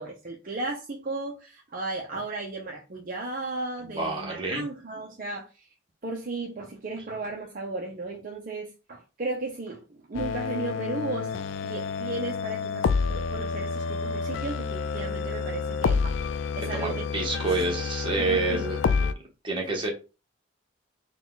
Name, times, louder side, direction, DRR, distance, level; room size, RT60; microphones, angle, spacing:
voice 1, 0.0-5.7 6.0-17.1 17.5-17.6 18.2-18.7, right 2 dB, 45° right, 0.6 m, -35 dB
voice 2, 3.8-4.6 16.7-18.8 19.4-19.9, right 2 dB, 25° right, 1.2 m, -28 dB
sound 1, 10.1-19.1, left 5 dB, 70° left, 0.3 m, -29 dB
4.2 x 2.3 x 3.8 m
head